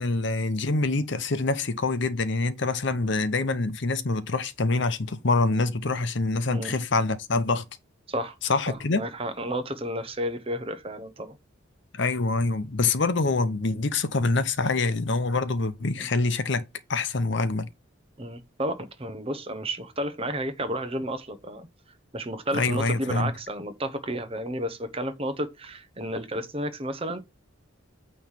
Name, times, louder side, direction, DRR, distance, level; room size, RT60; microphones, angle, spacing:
voice 1, 0.0-7.7 8.5-9.0 11.9-17.7 22.5-23.3, left 3 dB, 55° left, 0.7 m, -25 dB
voice 2, 8.7-11.4 16.0-16.1 18.2-21.7 22.1-27.2, right 1 dB, 30° right, 0.9 m, -32 dB
9.1 x 3.2 x 5.7 m
head